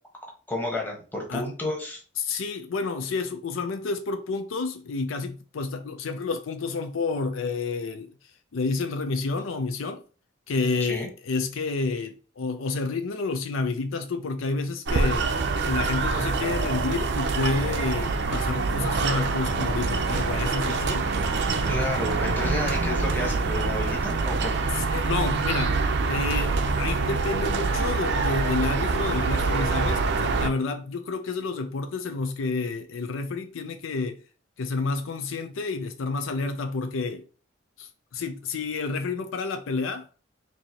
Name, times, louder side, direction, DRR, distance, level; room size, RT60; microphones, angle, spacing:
voice 1, 0.5-2.0 10.9-11.1 21.7-24.6, left 1 dB, 10° left, 1.1 m, -31 dB
voice 2, 2.2-8.1 8.5-10.0 10.5-15.3 15.7-21.1 24.7-25.8 26.1-34.2 34.6-37.2 37.8-40.1, left 3 dB, 75° left, 0.5 m, -29 dB
sound 1, 14.9-30.5, right 4 dB, 60° right, 0.5 m, -25 dB
4.5 x 2.7 x 2.8 m
head